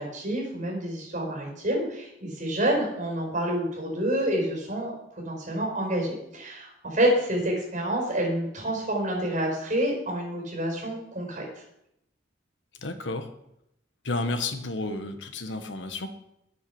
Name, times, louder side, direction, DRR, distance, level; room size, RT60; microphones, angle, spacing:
voice 1, 0.0-4.9 5.2-11.4, right 1 dB, 45° right, -1 dB, 5.0 m, -28 dB
voice 2, 12.8-13.3 14.0-16.1, left 2 dB, 70° left, 7 dB, 1.3 m, -31 dB
9.7 x 8.4 x 7.1 m, 0.79 s
head